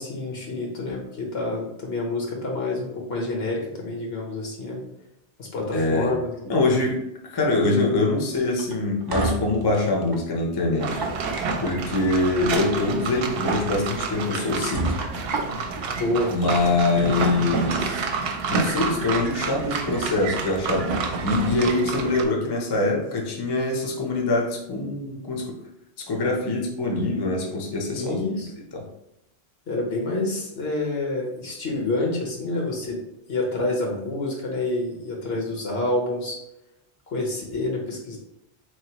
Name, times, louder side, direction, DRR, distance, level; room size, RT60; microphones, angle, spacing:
voice 1, 0.0-4.8 5.4-6.3 16.0-16.3 27.9-28.5 29.7-33.0 33.3-36.4 37.1-38.2, left 2 dB, 70° left, -1 dB, 1.3 m, -28 dB
voice 2, 5.7-6.1 6.4-11.0 11.6-15.0 16.3-18.1 18.5-25.5 26.1-28.2 28.7-28.9, left 2 dB, 25° left, 0 dB, 0.6 m, -24 dB
sound 1, 8.6-10.3 10.8-11.9 12.9-13.1 13.5-13.6 14.1-14.2 14.7-15.9, right 3 dB, 35° right, 0.4 m, -30 dB
sound 2, 10.8-22.2, right 4 dB, 70° right, 0.8 m, -28 dB
4.0 x 3.2 x 2.9 m, 0.84 s
omnidirectional pair, 1.1 m